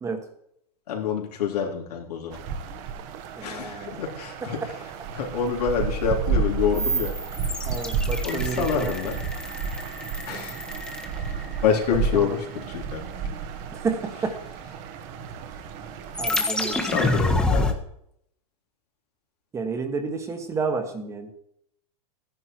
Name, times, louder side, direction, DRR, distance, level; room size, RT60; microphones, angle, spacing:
voice 1, 0.9-2.4 3.4-4.6 5.1-7.1 8.2-9.2 10.3-10.6 11.6-13.0 16.8-17.8, left 7 dB, 90° left, 0 dB, 3.6 m, -27 dB
sound 1, 2.3-16.4, right 5 dB, 40° right, 1.3 m, -32 dB
voice 2, 3.4-4.0 7.6-9.0 12.1-12.4 13.7-14.4 16.2-16.9 19.5-21.3, right 4 dB, 15° right, 6 dB, 1.5 m, -30 dB
sound 2, 6.7-11.8 16.1-17.7, left 1 dB, 5° left, 1.3 m, -28 dB
13.5 x 10.5 x 4.6 m, 0.73 s
supercardioid pair, 145°, 19 cm